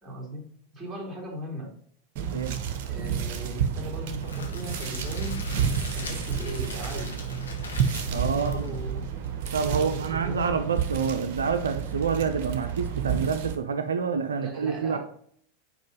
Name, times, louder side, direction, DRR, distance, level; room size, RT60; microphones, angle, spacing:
voice 1, 0.0-0.4 0.7-1.7 2.9-5.4 5.9-7.1 8.0-9.1 9.6-10.5 14.4-15.0, right 1 dB, 5° right, -3 dB, 3.0 m, -37 dB
sound 1, 2.2-13.6, right 7 dB, 45° right, 0.9 m, -30 dB
Crackle, 4.2-9.3, left 4 dB, 70° left, 1.4 m, -39 dB
voice 2, 8.1-8.7 9.5-15.0, right 5 dB, 70° right, 7 dB, 0.5 m, -28 dB
5.2 x 4.9 x 5.3 m, 0.62 s
figure-of-eight pair, 90°, 0 cm